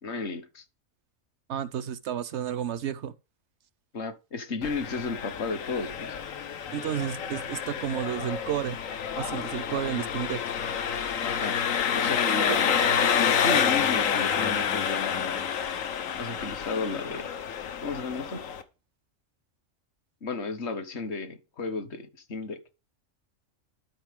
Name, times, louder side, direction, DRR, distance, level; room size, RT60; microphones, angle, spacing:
voice 1, 0.0-0.6 3.9-6.2 11.2-11.6 11.9-15.3 16.2-17.3 17.8-18.4 20.2-22.6, left 4 dB, 60° left, 1.4 m, -33 dB
voice 2, 1.5-3.1 6.7-8.8 9.1-10.4 12.5-12.6, right 10 dB, 65° right, 0.8 m, -31 dB
Engine, 4.6-18.6, left 7 dB, 80° left, 1.4 m, -28 dB
12.0 x 5.5 x 3.6 m
omnidirectional pair, 1.3 m